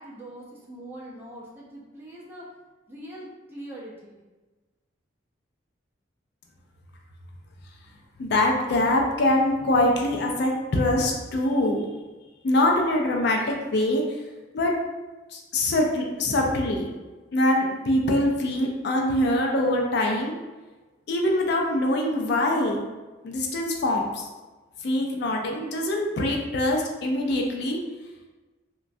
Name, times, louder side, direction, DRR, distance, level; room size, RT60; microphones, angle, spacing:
voice 1, 0.0-2.5 2.9-4.2, right 1 dB, 10° right, -6 dB, 0.5 m, -42 dB
voice 2, 8.2-11.8 12.4-14.2 14.5-14.7 15.3-16.9 17.3-20.4 21.1-22.9 23.2-24.3 24.8-27.8, left 1 dB, 55° left, 1 dB, 0.4 m, -24 dB
3.0 x 2.2 x 2.6 m, 1.2 s
head